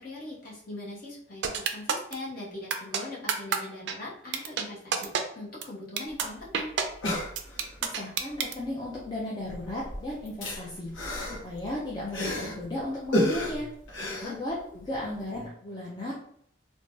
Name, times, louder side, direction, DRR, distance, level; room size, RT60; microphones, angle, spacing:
voice 1, 0.0-6.7 14.0-14.3, left 2 dB, 45° left, -5 dB, 0.9 m, -41 dB
sound 1, 1.4-2.1 2.7-3.0 3.3-3.6 3.9-4.0 4.3-4.6 4.9-5.2 5.6-5.7 6.0-6.2 6.5-6.8 7.4-8.5, right 7 dB, 60° right, 0.3 m, -27 dB
sound 2, 6.1-6.2 6.4-6.5 6.8-7.8 8.9-9.2 9.4-12.7 13.1-15.0 15.3-15.4, left 1 dB, 75° left, 0.8 m, -32 dB
voice 2, 7.8-10.9 11.3-13.7 14.2-16.1, left 1 dB, 20° left, -5 dB, 0.4 m, -35 dB
3.2 x 2.2 x 2.6 m, 0.67 s
head